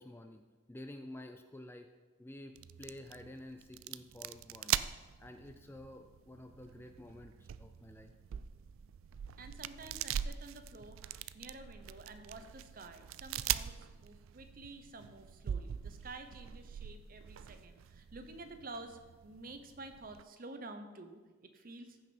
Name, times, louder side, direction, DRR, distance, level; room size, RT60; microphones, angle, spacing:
voice 1, 0.0-1.9 2.2-4.8 5.2-8.1, left 1 dB, 10° left, 7 dB, 0.4 m, -50 dB
sound 1, 2.5-20.2, right 10 dB, 75° right, 0.3 m, -42 dB
voice 2, 9.4-11.0 11.3-22.0, right 2 dB, 45° right, 7 dB, 0.9 m, -50 dB
14.5 x 6.2 x 4.4 m, 1.3 s
head